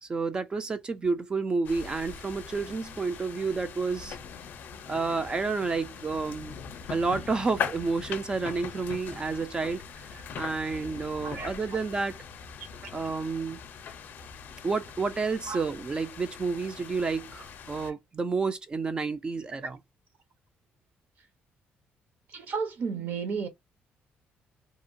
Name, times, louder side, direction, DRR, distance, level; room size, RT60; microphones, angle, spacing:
voice 1, 0.0-4.2 4.9-6.6 6.9-12.2 12.9-13.6 14.6-19.8, right 4 dB, 20° right, 0.3 m, -30 dB
sound 1, 1.6-17.9, left 7 dB, 55° left, 0.5 m, -41 dB
voice 2, 22.3-23.5, right 5 dB, 55° right, 0.7 m, -32 dB
2.8 x 2.2 x 2.5 m
cardioid pair, 155°, 4 cm